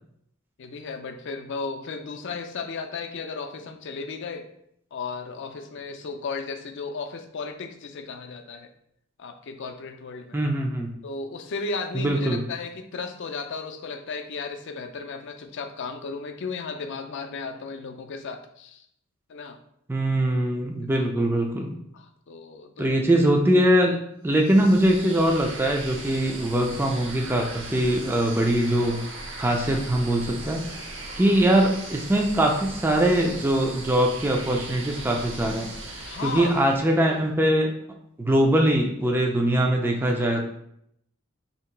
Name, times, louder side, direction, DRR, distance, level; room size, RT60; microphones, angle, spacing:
voice 1, 0.6-4.5 4.9-8.7 9.2-10.4 11.0-18.8 19.3-19.6 21.9-23.0 26.1-26.3 36.0-36.5 37.0-37.2 40.2-40.4, left 4 dB, 55° left, 6 dB, 0.4 m, -35 dB
voice 2, 10.3-10.9 11.9-12.4 19.9-21.7 22.8-24.0 24.2-29.0 29.4-37.7 38.2-40.4, right 1 dB, 10° right, 1 dB, 0.3 m, -22 dB
sound 1, 24.3-37.1, right 2 dB, 60° right, 0.8 m, -38 dB
2.9 x 2.8 x 4.4 m, 0.73 s
head